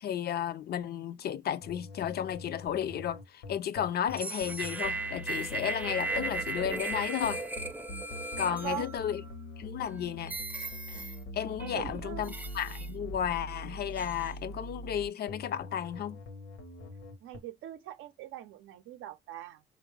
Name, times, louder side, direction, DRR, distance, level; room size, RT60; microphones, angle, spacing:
voice 1, 0.0-7.4 8.4-9.2 9.6-10.3 10.9-11.1 11.3-16.2, left 9 dB, 55° left, 0.4 m, -33 dB
sound 1, 1.6-17.4, left 1 dB, 80° left, 0.9 m, -44 dB
sound 2, 4.1-9.3 9.9-10.0 10.3-11.2 11.6-13.3 14.0-14.3, right 3 dB, 10° right, 0.4 m, -37 dB
voice 2, 8.4-8.9 11.6-12.4 17.2-19.6, right 12 dB, 90° right, 0.5 m, -42 dB
4.3 x 2.6 x 3.1 m
cardioid pair, 90°, 20 cm